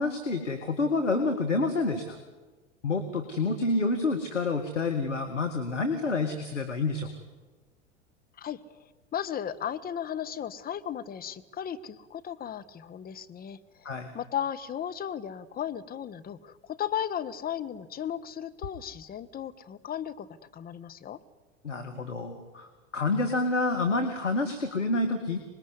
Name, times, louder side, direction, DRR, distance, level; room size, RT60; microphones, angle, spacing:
voice 1, 0.0-2.2 2.8-7.1 13.8-14.1 21.6-22.7 22.9-25.4, left 3 dB, 85° left, 5 dB, 2.1 m, -28 dB
voice 2, 9.1-13.9 14.1-21.2, left 9 dB, 25° left, 10 dB, 1.4 m, -35 dB
25.5 x 20.5 x 9.9 m, 1.3 s
figure-of-eight pair, 85°, 36 cm